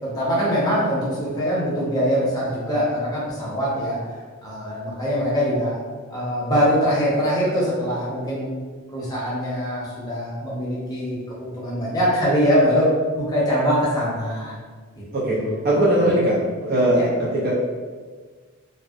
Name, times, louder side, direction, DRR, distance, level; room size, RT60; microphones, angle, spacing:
voice 1, 0.0-4.2 4.4-5.8 6.1-8.5 8.9-14.6 15.0-15.1 15.3-15.6 16.0-16.1 16.9-17.1, equal, 20° left, -7 dB, 0.6 m, -23 dB
voice 2, 15.6-16.4 16.6-17.0 17.4-17.5, right 1 dB, 45° right, -7 dB, 0.5 m, -19 dB
2.6 x 2.0 x 2.4 m, 1.5 s
head